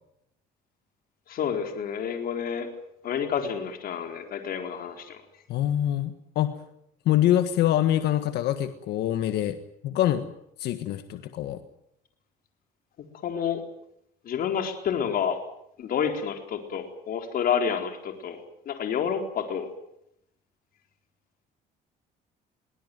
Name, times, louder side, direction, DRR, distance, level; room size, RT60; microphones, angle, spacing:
voice 1, 1.3-2.7 3.0-5.2 13.2-13.6 14.2-15.4 15.8-19.7, left 7 dB, 60° left, 5 dB, 4.1 m, -29 dB
voice 2, 5.5-6.5 7.0-9.6 9.8-10.3 10.6-11.6, left 12 dB, 75° left, 10 dB, 1.6 m, -25 dB
22.5 x 18.5 x 9.4 m, 0.75 s
cardioid pair, 110°, 17 cm